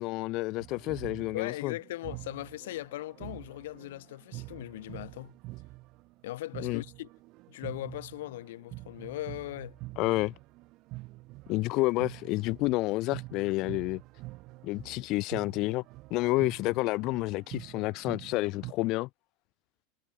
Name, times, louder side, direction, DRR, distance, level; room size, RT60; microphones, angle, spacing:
voice 1, 0.0-1.7 6.6-6.8 10.0-10.3 11.5-14.0 14.6-15.8 16.1-19.1, left 21 dB, 50° left, 2.4 m, -29 dB
sound 1, 0.6-6.2 6.5-18.7, right 21 dB, 45° right, 3.3 m, -46 dB
voice 2, 1.3-5.3 6.2-7.1 7.5-9.8, left 16 dB, 75° left, 3.4 m, -39 dB
supercardioid pair, 135°, 0 cm